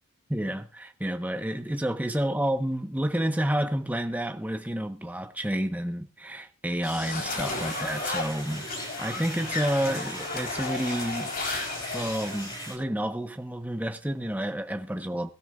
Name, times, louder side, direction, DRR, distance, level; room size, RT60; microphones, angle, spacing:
voice 1, 0.3-8.7 9.0-11.3 11.9-15.3, right 1 dB, 5° right, 0.9 m, -30 dB
sound 1, 6.8-12.6, left 3 dB, 40° left, 3.5 m, -34 dB
sound 2, 7.3-12.7, equal, 20° left, 5.9 m, -40 dB
22.0 x 13.0 x 2.4 m
head